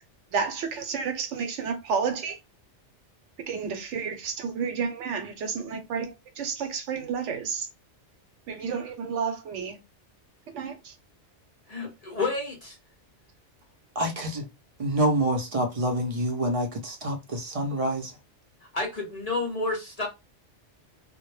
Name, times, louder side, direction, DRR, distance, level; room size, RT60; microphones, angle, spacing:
voice 1, 0.3-2.4 3.5-7.7 8.5-9.8 10.5-11.0, right 6 dB, 90° right, 1.0 m, -31 dB
voice 2, 11.7-12.8 18.7-20.1, left 3 dB, 40° left, 0.6 m, -30 dB
voice 3, 14.0-14.5 14.8-18.1, right 1 dB, 40° right, 0.5 m, -27 dB
2.1 x 2.1 x 3.0 m
omnidirectional pair, 1.2 m